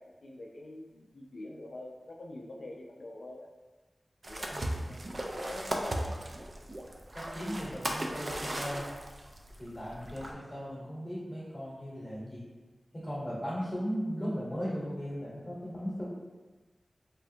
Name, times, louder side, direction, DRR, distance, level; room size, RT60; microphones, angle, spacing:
voice 1, 0.0-3.5 4.2-4.6 5.2-6.2, left 1 dB, 80° left, 0 dB, 0.4 m, -45 dB
sound 1, 4.2-10.3, right 1 dB, 45° right, 0.3 m, -37 dB
voice 2, 4.5-4.9 7.1-8.9 9.6-12.4 12.9-16.0, equal, 15° left, -9 dB, 1.0 m, -37 dB
3.4 x 2.1 x 2.7 m, 1.2 s
wide cardioid pair, 90°, 0 cm